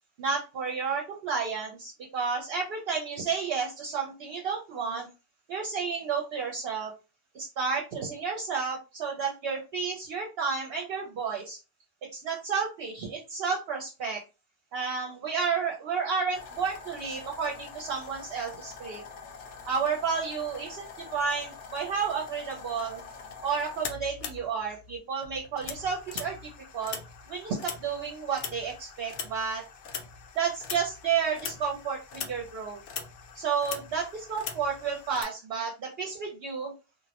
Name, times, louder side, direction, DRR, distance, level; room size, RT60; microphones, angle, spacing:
voice 1, 0.2-5.1 5.5-6.9 7.3-11.6 12.1-14.2 14.7-19.0 19.6-23.0 23.4-27.0 27.3-29.6 30.4-32.8 33.3-36.7, right 5 dB, 65° right, 0 dB, 0.7 m, -31 dB
sound 1, 16.3-25.0 25.2-35.2, left 6 dB, 90° left, 0.9 m, -42 dB
2.3 x 2.0 x 2.8 m, 0.31 s
omnidirectional pair, 1.2 m